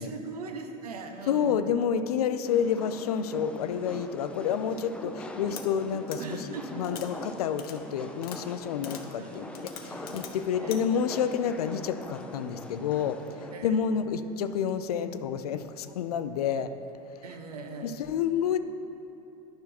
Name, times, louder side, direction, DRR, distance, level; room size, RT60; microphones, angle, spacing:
voice 1, 0.0-1.6 6.2-7.0 9.2-10.3 10.6-10.8 13.5-13.7 17.2-18.0, right 4 dB, 90° right, 5 dB, 0.7 m, -40 dB
voice 2, 1.3-9.5 9.8-13.2 13.6-16.7 17.8-18.6, left 7 dB, 85° left, 10 dB, 0.4 m, -29 dB
sound 1, 2.4-13.6, left 1 dB, 5° left, 0.5 m, -42 dB
sound 2, 5.6-5.7 6.1-6.2 6.8-7.1 7.6-7.8 8.2-8.4 8.8-9.0 9.5-10.3 10.7-10.8, left 10 dB, 50° left, 0.8 m, -42 dB
9.5 x 5.7 x 4.1 m, 2.9 s
hypercardioid pair, 90°, 19 cm